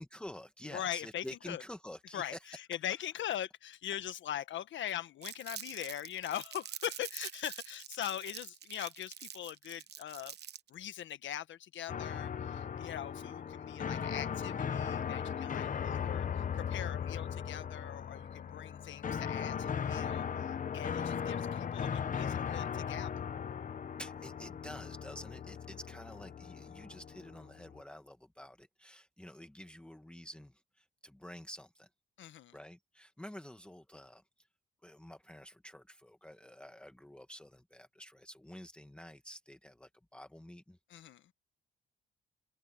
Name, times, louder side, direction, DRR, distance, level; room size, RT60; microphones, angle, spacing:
voice 1, 0.0-2.6 3.0-3.1 24.0-31.9 32.5-34.5 34.8-40.8, equal, 5° left, 1.2 m, -49 dB
voice 2, 0.7-1.6 2.1-10.3 10.7-23.3 32.2-32.5 40.9-41.2, left 11 dB, 70° left, 1.4 m, -41 dB
Crumpling crinkling, 5.2-10.7, right 10 dB, 55° right, 1.0 m, -46 dB
sound 1, 11.9-27.8, left 7 dB, 40° left, 1.0 m, -38 dB
open air
cardioid pair, 90°, 20 cm